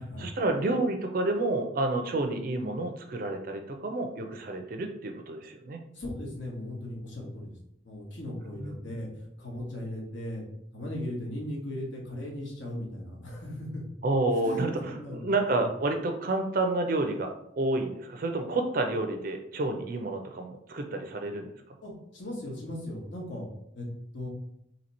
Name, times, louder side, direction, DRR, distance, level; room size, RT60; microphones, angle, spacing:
voice 1, 0.2-5.8 8.6-8.8 14.0-21.7, right 2 dB, 45° right, 5 dB, 0.4 m, -29 dB
voice 2, 5.9-7.5 7.8-10.4 10.7-13.8 14.4-15.2 15.5-15.6 21.8-23.5 23.7-23.9 24.1-24.3, left 1 dB, 70° left, -2 dB, 1.1 m, -37 dB
2.9 x 2.8 x 4.1 m, 0.77 s
head